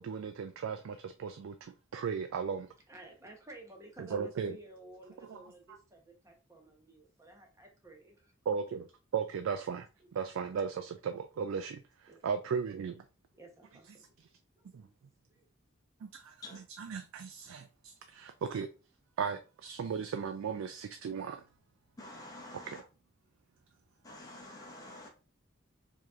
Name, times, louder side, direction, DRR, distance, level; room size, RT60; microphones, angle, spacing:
voice 1, 0.0-2.7 4.0-4.6 5.3-5.4 8.5-8.9 9.1-9.9 10.1-13.0 14.7-14.8 16.0-18.7 19.2-21.4 22.7-22.8, right 6 dB, 90° right, 0.3 m, -36 dB
voice 2, 2.9-8.3 10.0-10.1 12.1-12.2 13.3-14.0 14.8-14.9 15.3-15.5, right 2 dB, 15° right, 0.9 m, -53 dB
voice 3, 22.0-22.8 24.0-25.1, left 1 dB, 20° left, 0.8 m, -48 dB
4.7 x 2.9 x 2.4 m
head